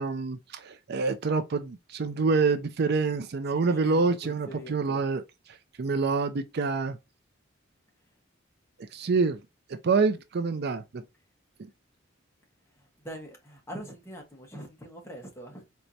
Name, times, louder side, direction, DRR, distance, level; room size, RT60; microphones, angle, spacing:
voice 1, 0.0-5.2 5.8-7.0 8.9-9.4 9.8-11.0, right 4 dB, 55° right, 0.4 m, -26 dB
voice 2, 3.5-5.1 12.7-15.6, equal, 15° left, 1.2 m, -43 dB
4.4 x 3.0 x 2.7 m
head